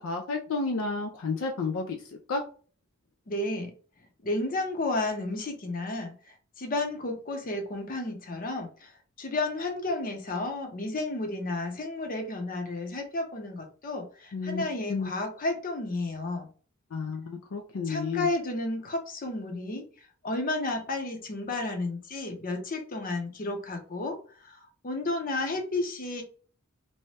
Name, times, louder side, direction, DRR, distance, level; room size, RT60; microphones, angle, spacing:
voice 1, 0.0-2.0 2.3-2.4 14.3-15.1 16.9-18.3, left 4 dB, 70° left, 1 dB, 0.4 m, -31 dB
voice 2, 3.3-3.7 4.2-6.1 6.6-8.9 9.2-16.5 17.8-19.8 20.2-24.2 24.4-26.2, left 2 dB, 40° left, 3 dB, 0.7 m, -32 dB
2.7 x 2.2 x 3.2 m, 0.40 s
head